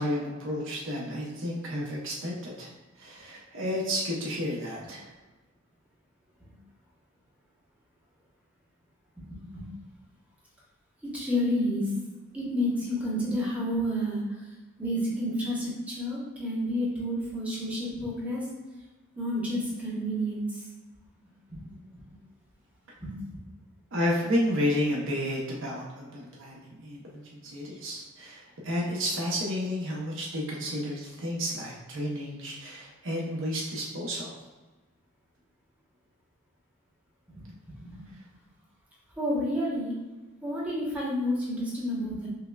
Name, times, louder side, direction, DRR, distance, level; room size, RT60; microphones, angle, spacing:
voice 1, 0.0-5.1 23.9-34.4, equal, 60° right, -4 dB, 0.7 m, -31 dB
voice 2, 9.2-9.7 11.1-11.9 12.3-14.2 14.8-18.4 19.2-20.4 21.5-21.7 23.0-23.1 37.4-37.5 37.8-38.0 39.2-39.9 40.4-42.3, equal, 5° right, -6 dB, 0.9 m, -30 dB
5.5 x 2.1 x 2.3 m, 1.2 s
head